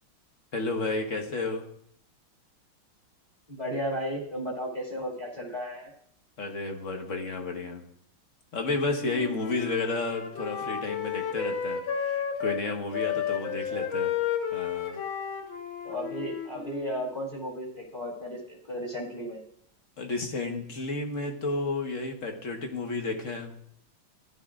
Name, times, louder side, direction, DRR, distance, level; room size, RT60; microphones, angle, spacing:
voice 1, 0.5-1.6 6.4-7.8 8.5-14.1 14.5-15.0 20.0-23.5, left 3 dB, 45° left, 3 dB, 1.4 m, -32 dB
voice 2, 3.5-5.9 13.5-13.9 15.8-19.4, equal, 20° left, -3 dB, 2.5 m, -34 dB
Wind instrument woodwind instrument, 8.9-12.6 12.9-17.0, left 8 dB, 75° left, 2.0 m, -32 dB
15.5 x 11.0 x 2.5 m, 0.66 s
omnidirectional pair, 2.2 m